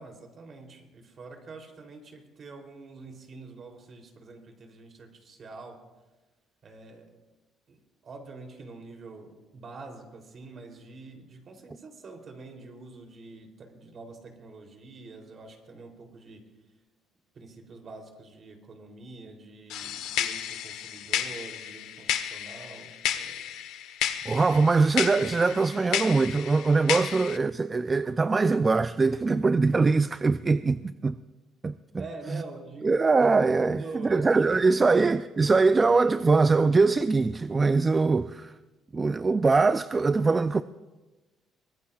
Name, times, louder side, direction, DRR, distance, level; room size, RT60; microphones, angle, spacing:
voice 1, 0.0-5.8 6.6-7.2 7.7-16.4 17.3-23.4 32.0-33.0 33.6-34.4, right 3 dB, 45° right, 3.1 m, -45 dB
sound 1, 19.7-27.4, left 10 dB, 90° left, 1.0 m, -32 dB
voice 2, 24.3-31.2 31.6-32.0 32.3-32.4 32.8-38.5 38.9-40.6, right 4 dB, 25° right, 0.4 m, -22 dB
23.5 x 20.0 x 2.4 m
cardioid pair, 120°, 0 cm